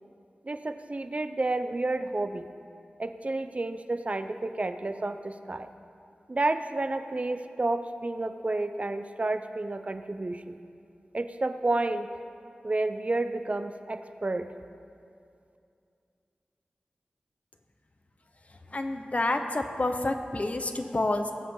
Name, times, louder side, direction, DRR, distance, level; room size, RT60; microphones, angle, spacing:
voice 1, 0.4-2.5 3.0-5.7 6.3-10.6 11.1-12.1 12.6-14.5, right 2 dB, 45° right, 9 dB, 0.6 m, -30 dB
voice 2, 18.7-21.3, left 2 dB, 45° left, 6 dB, 1.0 m, -28 dB
20.0 x 7.6 x 3.8 m, 2.5 s
cardioid pair, 45°, 3 cm